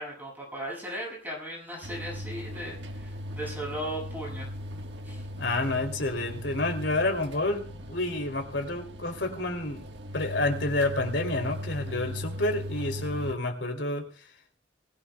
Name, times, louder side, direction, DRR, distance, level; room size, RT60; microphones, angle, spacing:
voice 1, 0.0-5.2, right 1 dB, 10° right, -4 dB, 6.7 m, -37 dB
sound 1, 1.8-13.3, equal, 75° right, 1.4 m, -38 dB
voice 2, 5.3-9.9 10.1-14.1, left 2 dB, 80° left, 4 dB, 2.9 m, -29 dB
21.0 x 16.0 x 2.3 m, 0.38 s
head